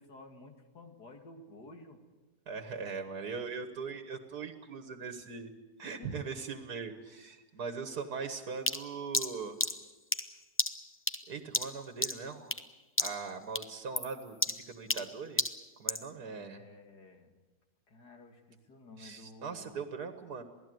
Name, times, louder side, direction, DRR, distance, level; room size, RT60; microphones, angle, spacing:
voice 1, 0.0-2.0 6.0-6.3 14.8-15.1 16.2-17.4 17.9-19.8, left 2 dB, 90° left, 4 dB, 2.9 m, -53 dB
voice 2, 2.5-5.5 5.8-9.6 11.3-12.5 13.0-15.4 15.8-16.6 19.0-20.4, right 5 dB, 75° right, 7 dB, 2.0 m, -40 dB
sound 1, 8.7-12.7 13.0-13.3 13.5-16.1, left 2 dB, 15° left, 0.4 m, -33 dB
27.5 x 17.5 x 7.9 m, 1.2 s
omnidirectional pair, 1.7 m